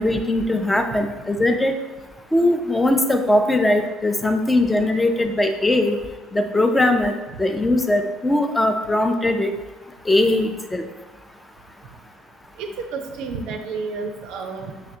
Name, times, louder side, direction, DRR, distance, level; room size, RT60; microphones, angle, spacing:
voice 1, 0.0-1.8 2.3-6.0 6.3-7.1 7.4-9.5 10.1-10.8, left 1 dB, 15° left, 6 dB, 0.5 m, -20 dB
voice 2, 12.6-15.0, right 4 dB, 60° right, 5 dB, 0.4 m, -31 dB
5.8 x 3.2 x 2.7 m, 1.2 s
figure-of-eight pair, 60°, 0 cm